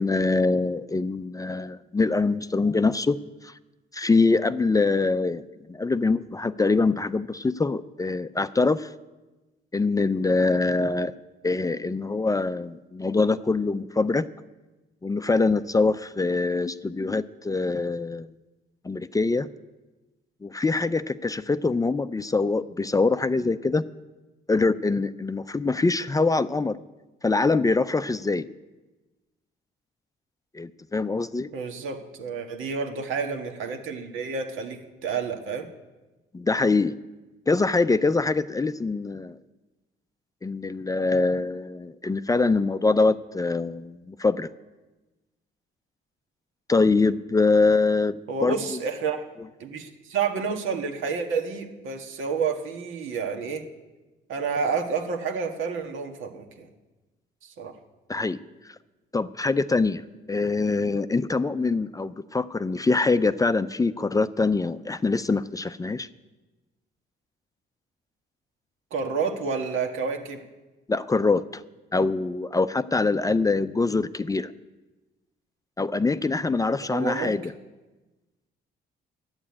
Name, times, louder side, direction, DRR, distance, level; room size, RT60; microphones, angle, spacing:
voice 1, 0.0-3.2 3.4-3.5 3.9-5.4 5.7-8.9 9.7-11.1 11.4-14.3 15.0-18.3 18.8-19.5 20.4-23.8 24.5-26.7 27.2-28.5 30.5-31.5 36.3-36.9 37.5-39.4 40.4-44.5 46.7-48.8 58.1-58.4 59.1-60.0 60.3-66.1 70.9-71.6 71.9-74.5 75.8-77.4, left 3 dB, 15° left, 13 dB, 0.4 m, -24 dB
voice 2, 31.5-35.7 48.3-49.2 49.6-53.6 54.3-56.7 57.4-57.7 68.9-70.4 76.8-77.3, right 5 dB, 85° right, 4 dB, 1.7 m, -29 dB
11.0 x 8.8 x 8.6 m, 1.1 s
cardioid pair, 90°, 20 cm